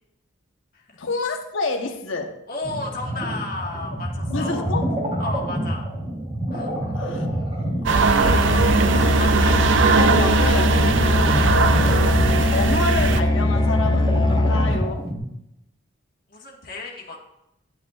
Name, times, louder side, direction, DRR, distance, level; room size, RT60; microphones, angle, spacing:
voice 1, 1.0-2.3 4.3-4.9 5.6-5.8 6.9-7.3 7.8-8.7 9.9-10.8 11.6-15.1, left 3 dB, 75° left, 4 dB, 1.0 m, -29 dB
voice 2, 2.5-4.6 5.2-5.9 6.5-6.7 8.9-9.8 10.9-11.2 16.3-17.2, left 2 dB, 45° left, -2 dB, 1.5 m, -33 dB
sound 1, 2.6-15.2, right 1 dB, 25° right, 3.2 m, -28 dB
sound 2, 7.9-13.2, right 4 dB, 65° right, 0.5 m, -20 dB
Musical instrument, 8.3-15.1, left 2 dB, 20° left, 0.5 m, -21 dB
10.0 x 8.9 x 2.4 m, 0.84 s
head